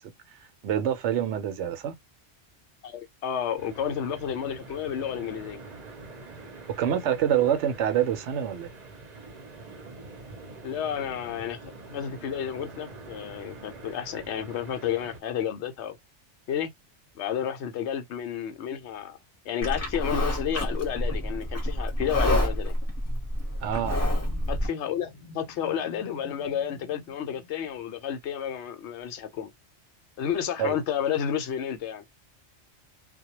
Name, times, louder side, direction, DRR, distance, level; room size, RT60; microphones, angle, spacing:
voice 1, 0.6-1.9 6.8-8.7 23.6-24.1 30.6-30.8, right 9 dB, 75° right, 0.9 m, -26 dB
voice 2, 2.8-5.6 10.6-16.0 16.5-16.7 17.1-19.2 19.5-22.7 24.5-29.5 30.2-32.0, left 9 dB, 75° left, 0.9 m, -31 dB
sound 1, 3.6-15.2, right 3 dB, 45° right, 0.7 m, -45 dB
Livestock farm animals working animals, 19.6-24.7, left 1 dB, 15° left, 0.8 m, -28 dB
sound 2, 23.8-27.7, left 3 dB, 50° left, 0.6 m, -49 dB
2.2 x 2.1 x 2.8 m
omnidirectional pair, 1.2 m